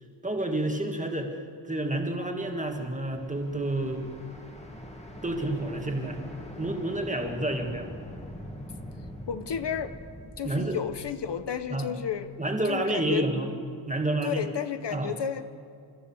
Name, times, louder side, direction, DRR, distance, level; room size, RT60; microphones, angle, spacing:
voice 1, 0.2-1.4 1.6-4.0 5.2-6.2 6.6-7.9 10.4-10.8 11.7-11.9 12.4-13.5 13.9-14.4 14.9-15.2, right 1 dB, 15° right, 3 dB, 1.7 m, -29 dB
sound 1, 2.4-12.3, equal, 15° left, 1.8 m, -44 dB
voice 2, 9.3-10.0 10.4-12.4 12.6-13.3 14.2-15.4, left 8 dB, 60° left, 10 dB, 0.9 m, -32 dB
29.5 x 13.5 x 7.1 m, 2.3 s
wide cardioid pair, 175°, 47 cm